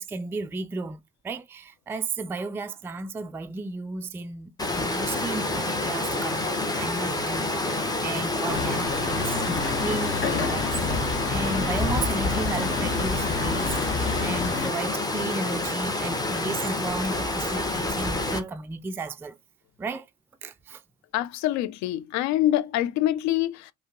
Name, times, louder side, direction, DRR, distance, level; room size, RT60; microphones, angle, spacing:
voice 1, 0.0-19.4 19.8-20.1 20.4-20.8, right 3 dB, 5° right, 0.4 m, -34 dB
Water, 4.6-18.4, left 2 dB, 10° left, 1.1 m, -28 dB
Truck, 8.5-14.7, left 4 dB, 30° left, 1.4 m, -29 dB
voice 2, 21.1-23.7, left 13 dB, 45° left, 0.6 m, -25 dB
5.0 x 2.4 x 3.6 m
figure-of-eight pair, 55°, 39 cm